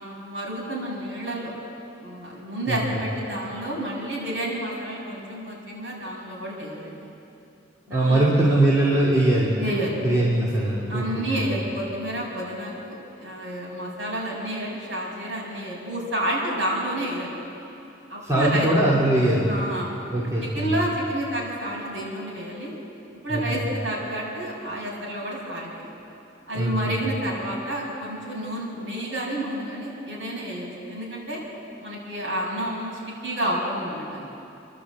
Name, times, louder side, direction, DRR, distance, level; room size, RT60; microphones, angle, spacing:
voice 1, 0.0-1.5 2.0-7.1 7.9-8.3 9.6-10.0 10.9-17.3 18.1-18.7 19.5-19.9 20.2-22.7 23.2-25.9 26.5-31.4 31.8-34.3, right 1 dB, 75° right, -4 dB, 6.6 m, -30 dB
voice 2, 7.9-9.5 10.0-11.5 18.2-19.5 20.1-20.7 23.3-23.6 26.5-27.0, right 1 dB, 15° right, -7 dB, 2.6 m, -21 dB
28.0 x 11.5 x 8.5 m, 2.8 s
head